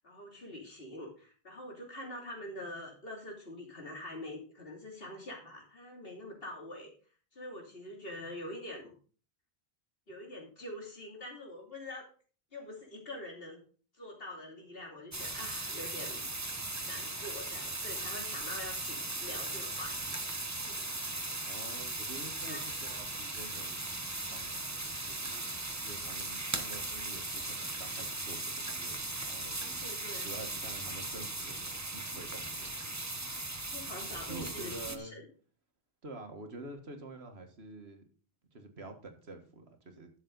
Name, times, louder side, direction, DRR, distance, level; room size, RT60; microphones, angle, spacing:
voice 1, 0.0-6.9 7.3-8.9 10.1-12.1 12.5-13.6 14.0-16.3 16.8-20.2 20.6-20.9 22.4-22.6 29.8-30.3 33.7-35.2, left 1 dB, 65° left, 1 dB, 3.1 m, -45 dB
sound 1, 15.1-35.0, right 2 dB, 20° right, 0.9 m, -38 dB
voice 2, 21.5-23.8 24.3-29.6 30.2-33.1 34.3-35.1 36.0-38.0 38.5-40.1, right 2 dB, 85° right, 5 dB, 2.0 m, -48 dB
11.5 x 7.3 x 4.0 m, 0.40 s
omnidirectional pair, 1.0 m